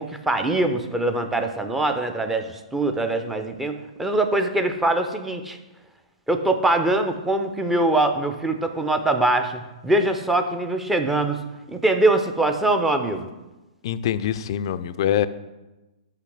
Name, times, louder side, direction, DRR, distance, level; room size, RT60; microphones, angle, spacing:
voice 1, 0.0-5.6 6.3-11.4 11.7-13.3, right 2 dB, 5° right, 6 dB, 0.6 m, -23 dB
voice 2, 13.8-15.3, left 10 dB, 45° left, 13 dB, 0.4 m, -24 dB
5.8 x 5.6 x 5.9 m, 1.1 s
figure-of-eight pair, 115°, 4 cm